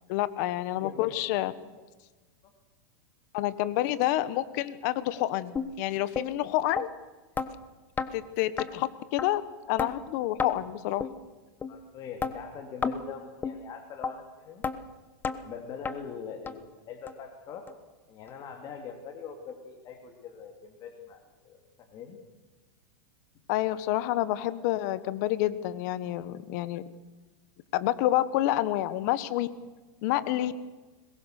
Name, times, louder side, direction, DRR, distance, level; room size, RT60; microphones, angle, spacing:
voice 1, 0.1-1.5 3.3-6.9 8.1-9.4 9.7-11.1 23.5-26.8 27.7-29.5 30.0-30.5, left 15 dB, 55° left, 14 dB, 1.4 m, -28 dB
voice 2, 0.7-1.2 11.7-14.6 15.3-17.7 18.1-22.2 30.1-30.2, left 6 dB, 35° left, 3 dB, 2.9 m, -43 dB
sound 1, 5.6-5.7 6.2-6.3 6.8-6.9 7.4-7.5 8.0-8.1 8.6-8.7 9.2-9.3 9.8-9.9 10.4-10.5 11.0-11.1 11.6-11.7 12.2-12.3 12.8-13.0 13.4-13.6 14.0-14.1 14.6-14.8 15.2-15.4 15.9-16.0 16.5-16.6 17.1-17.2 17.7-17.8 18.3-18.4, left 5 dB, 15° left, 1.1 m, -30 dB
22.0 x 21.0 x 6.7 m, 1.2 s
supercardioid pair, 135°, 12 cm